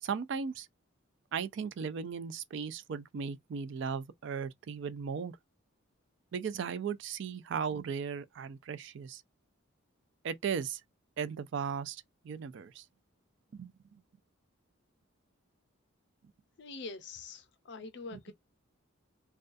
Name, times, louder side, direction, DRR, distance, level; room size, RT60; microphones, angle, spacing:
voice 1, 0.0-0.7 1.3-5.4 6.3-9.2 10.2-10.8 11.2-12.8 13.5-14.0 18.1-18.2, right 6 dB, 60° right, 0.3 m, -37 dB
voice 2, 16.6-18.3, left 4 dB, 55° left, 0.5 m, -44 dB
2.3 x 2.2 x 2.5 m
head